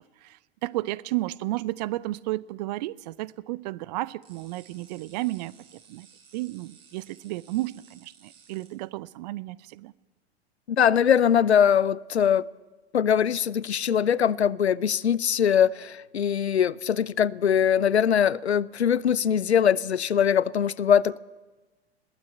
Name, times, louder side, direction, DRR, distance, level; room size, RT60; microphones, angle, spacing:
voice 1, 0.2-6.1 6.3-9.9, right 18 dB, 40° right, 0.6 m, -33 dB
sound 1, 4.2-8.7, right 6 dB, 65° right, 7.2 m, -56 dB
voice 2, 10.7-12.4 12.9-21.2, left 8 dB, 75° left, 0.6 m, -22 dB
21.5 x 15.5 x 8.3 m
figure-of-eight pair, 95°, 33 cm